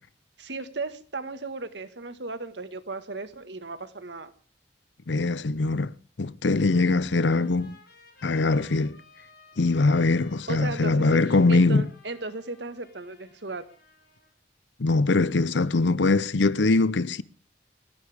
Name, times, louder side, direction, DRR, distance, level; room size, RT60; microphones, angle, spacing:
voice 1, 0.4-4.3 10.5-13.7, right 3 dB, 80° right, 1.7 m, -36 dB
voice 2, 5.1-5.9 6.2-7.8 8.2-9.0 9.6-11.8 14.8-17.2, left 3 dB, 90° left, 0.7 m, -22 dB
Trumpet, 6.6-14.3, left 4 dB, 60° left, 7.2 m, -56 dB
30.0 x 11.0 x 3.5 m
head